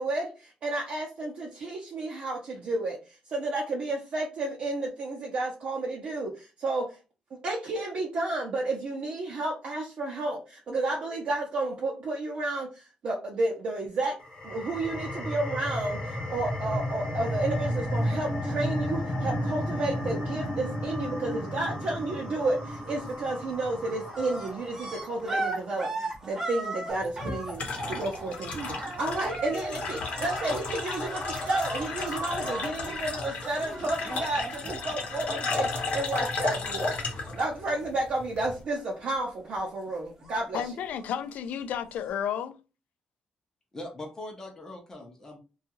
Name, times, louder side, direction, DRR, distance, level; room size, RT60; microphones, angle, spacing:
voice 1, 0.0-7.0 7.4-14.2 14.4-40.6, right 2 dB, 50° right, 0.6 m, -31 dB
sound 1, 14.2-25.4, equal, 35° left, 1.0 m, -33 dB
sound 2, 22.8-23.3 23.5-35.8 36.1-38.2 38.5-39.2 39.5-41.3 42.0-42.1, right 2 dB, 15° right, 0.7 m, -38 dB
sound 3, 26.9-38.6, left 3 dB, 60° left, 0.8 m, -34 dB
voice 2, 40.2-42.6, left 8 dB, 80° left, 0.3 m, -33 dB
voice 3, 43.7-45.4, left 1 dB, 20° left, 0.6 m, -41 dB
2.7 x 2.3 x 2.8 m
cardioid pair, 160°, 3 cm